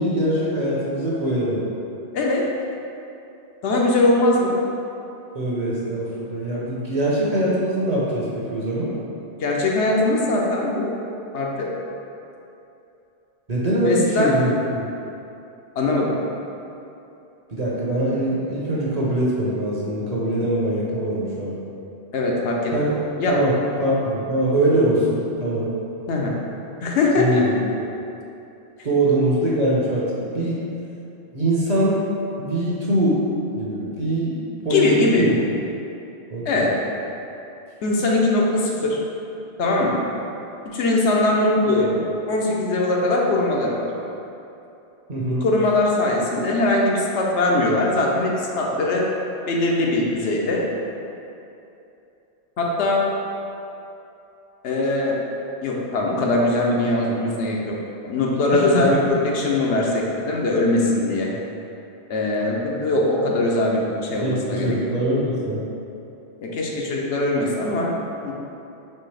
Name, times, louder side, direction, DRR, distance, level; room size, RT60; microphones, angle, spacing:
voice 1, 0.0-1.6 5.3-8.9 13.5-14.8 17.5-21.6 22.7-22.9 23.3-25.7 27.2-27.5 28.8-30.6 31.3-32.0 32.4-33.2 33.5-34.4 34.6-35.4 36.3-36.7 45.1-45.4 58.5-59.0 64.2-65.6, right 1 dB, 45° right, -6 dB, 0.7 m, -22 dB
voice 2, 2.1-2.4 3.6-4.6 9.4-10.9 11.3-11.7 13.8-14.4 15.8-16.1 22.1-22.9 23.2-23.3 26.1-26.3 26.8-27.4 34.7-35.3 36.4-36.7 37.8-39.0 39.6-39.9 40.7-42.0 42.3-43.9 45.4-49.0 49.5-50.6 52.6-53.0 54.6-55.2 55.6-57.8 58.0-61.3 62.1-64.7 66.4-68.0 68.2-68.3, left 2 dB, 85° left, -2 dB, 1.0 m, -21 dB
4.4 x 3.2 x 3.3 m, 2.8 s
omnidirectional pair, 1.1 m